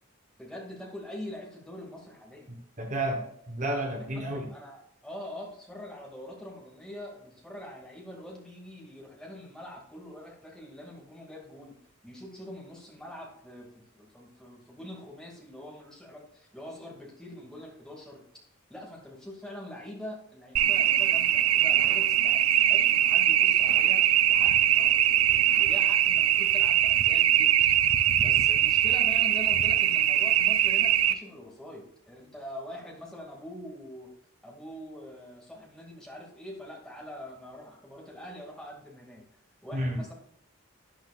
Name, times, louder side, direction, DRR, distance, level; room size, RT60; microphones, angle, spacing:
voice 1, 0.4-2.5 4.1-11.8 12.0-18.2 18.7-27.5 28.2-34.1 34.4-39.3 39.6-40.1, left 1 dB, 5° left, -3 dB, 2.2 m, -44 dB
voice 2, 2.8-4.5 39.7-40.0, right 1 dB, 35° right, 2 dB, 1.1 m, -31 dB
sound 1, 20.6-31.1, right 11 dB, 90° right, 0.7 m, -22 dB
11.5 x 10.0 x 2.4 m, 0.73 s
head